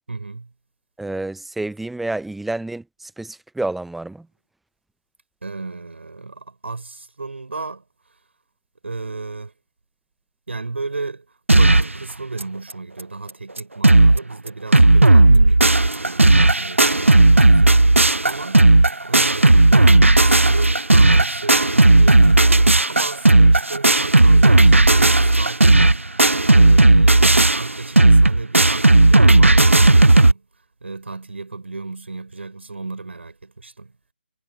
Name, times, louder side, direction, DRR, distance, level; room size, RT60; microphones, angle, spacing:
voice 1, 0.1-0.5 5.4-7.8 8.8-9.5 10.5-18.8 19.0-25.9 26.4-30.5 30.8-33.9, right 3 dB, 70° right, 3.9 m, -33 dB
voice 2, 1.0-4.3, right 2 dB, ahead, 0.5 m, -29 dB
sound 1, 11.5-12.0 12.4-12.5 12.7-12.8 13.3-13.4 13.6-14.2 14.5-30.3, right 2 dB, 90° right, 0.6 m, -13 dB
figure-of-eight pair, 145°, 7 cm